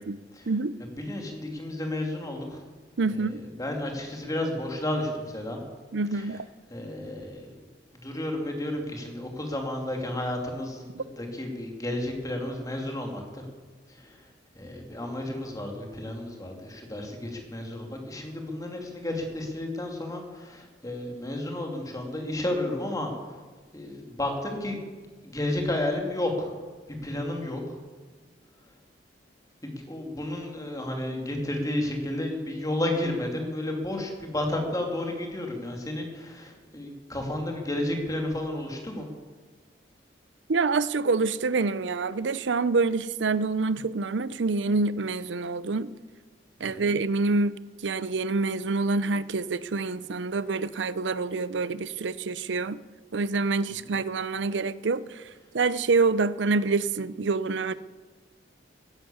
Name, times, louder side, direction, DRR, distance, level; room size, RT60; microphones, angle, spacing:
voice 1, 0.8-2.6 3.1-5.6 6.1-6.3 6.7-7.5 8.0-13.5 13.9-14.3 14.5-23.4 23.7-24.8 25.2-27.6 29.6-39.1 46.6-46.9 53.8-53.9, left 1 dB, 20° left, 2.7 m, -32 dB
voice 2, 3.0-3.4 5.9-6.5 11.0-11.1 40.5-45.9 46.6-52.8 53.1-55.2 55.5-57.7, right 3 dB, 80° right, 0.6 m, -26 dB
14.5 x 11.0 x 8.6 m
head